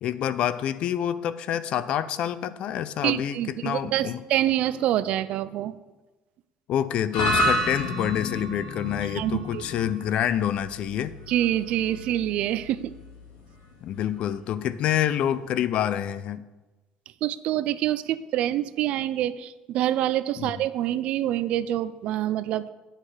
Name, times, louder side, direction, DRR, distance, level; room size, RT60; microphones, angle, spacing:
voice 1, 0.0-4.2 6.7-11.1 13.8-16.4 20.4-20.5, left 10 dB, 50° left, 15 dB, 0.4 m, -27 dB
voice 2, 3.0-5.8 9.1-9.6 11.3-12.9 17.2-22.7, right 12 dB, 55° right, 15 dB, 0.4 m, -26 dB
sound 1, 7.1-15.5, equal, 75° left, 2.2 m, -31 dB
9.7 x 6.4 x 4.9 m, 1.2 s
cardioid pair, 160°, 2 cm